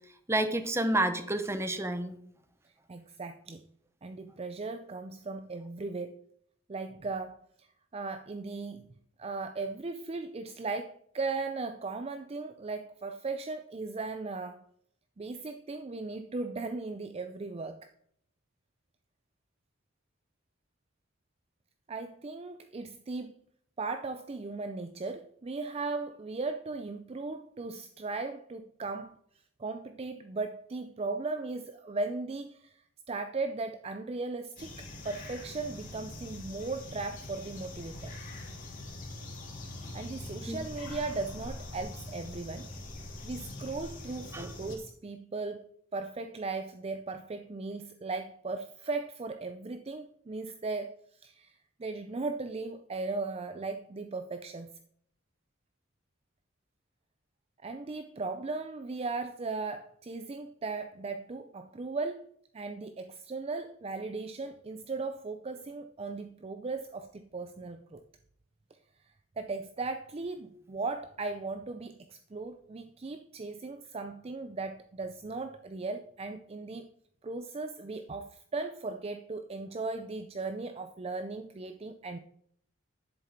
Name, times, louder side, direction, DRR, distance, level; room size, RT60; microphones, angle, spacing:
voice 1, 0.3-2.2 40.5-40.6 44.3-44.5, right 1 dB, 15° right, 0.9 m, -29 dB
voice 2, 2.9-3.7 4.0-6.2 6.7-7.7 7.9-8.9 9.2-14.6 15.2-17.9 21.9-23.4 23.8-29.2 29.6-38.1 39.9-42.7 43.2-54.7 57.6-68.0 69.1-76.9 77.2-82.2, right 3 dB, 30° right, 0.4 m, -37 dB
sound 1, 34.6-44.8, left 2 dB, 40° left, 2.9 m, -43 dB
10.5 x 7.6 x 4.4 m
head